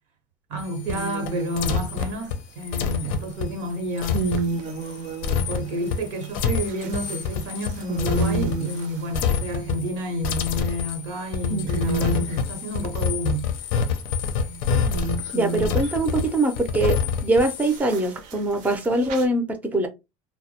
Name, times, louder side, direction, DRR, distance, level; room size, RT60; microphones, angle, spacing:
voice 1, 0.5-4.2 5.5-13.5, right 1 dB, 85° right, 0.8 m, -30 dB
sound 1, 0.6-8.9 9.1-10.0 10.2-17.8, left 6 dB, 70° left, 0.5 m, -27 dB
sound 2, 0.9-2.3 3.6-9.5 10.1-10.7 11.2-11.3 11.5-12.4 13.7-16.1 17.6-19.3, right 3 dB, 60° right, 0.5 m, -32 dB
voice 2, 15.3-17.0 17.2-19.9, right 2 dB, 10° right, 0.5 m, -22 dB
2.2 x 2.0 x 2.7 m
supercardioid pair, 110°, 15 cm